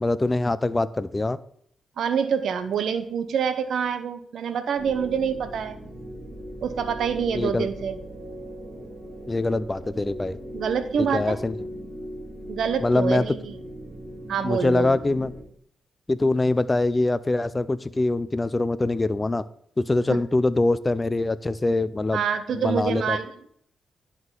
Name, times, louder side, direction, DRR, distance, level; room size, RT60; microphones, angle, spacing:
voice 1, 0.0-1.4 7.3-7.7 9.3-10.4 11.1-11.6 12.8-13.3 14.4-15.3 16.1-19.4 19.8-22.2 22.5-23.2, left 2 dB, 20° left, 16 dB, 0.4 m, -23 dB
voice 2, 2.0-5.8 6.6-8.0 10.5-11.4 12.5-13.6 14.3-15.0 20.1-20.2 22.1-23.5, right 7 dB, 75° right, 11 dB, 0.7 m, -26 dB
sound 1, 4.8-15.4, equal, 15° right, 2.7 m, -39 dB
10.5 x 3.7 x 3.8 m, 0.67 s
cardioid pair, 85°, 0 cm